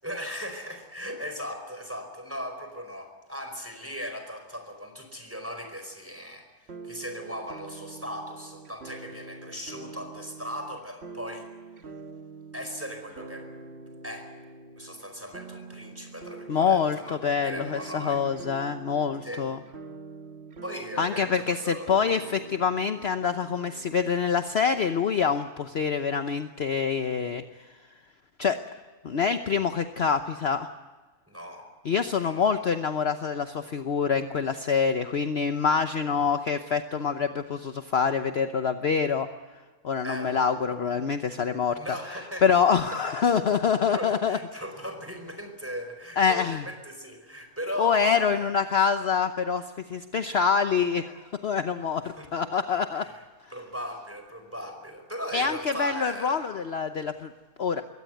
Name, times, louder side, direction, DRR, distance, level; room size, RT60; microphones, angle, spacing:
voice 1, 0.0-11.5 12.5-13.5 14.0-14.3 14.8-18.2 19.2-19.5 20.6-22.2 31.3-31.7 32.2-32.7 40.0-40.4 41.7-42.4 43.9-48.5 52.1-52.3 53.0-53.2 53.5-56.5, equal, 10° right, 5 dB, 4.7 m, -38 dB
sound 1, 6.7-24.5, right 4 dB, 45° right, 1.6 m, -45 dB
voice 2, 16.5-19.6 21.0-27.7 28.4-28.6 29.0-30.7 31.8-39.3 39.8-42.0 42.4-44.4 46.2-46.6 47.8-52.0 52.3-53.1 55.3-57.3 57.6-57.8, left 6 dB, 50° left, 8 dB, 1.1 m, -26 dB
22.5 x 18.0 x 9.2 m, 1.3 s
omnidirectional pair, 1.5 m